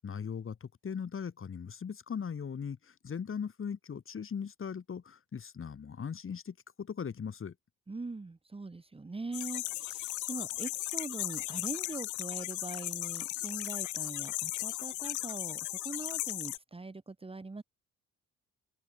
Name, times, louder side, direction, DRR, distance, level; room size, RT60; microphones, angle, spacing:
voice 1, 0.0-7.5, left 7 dB, 45° left, 3.7 m, -39 dB
voice 2, 7.9-17.6, right 3 dB, 20° right, 1.7 m, -42 dB
sound 1, 9.3-16.6, left 18 dB, 75° left, 0.5 m, -36 dB
open air
cardioid pair, 90°, 30 cm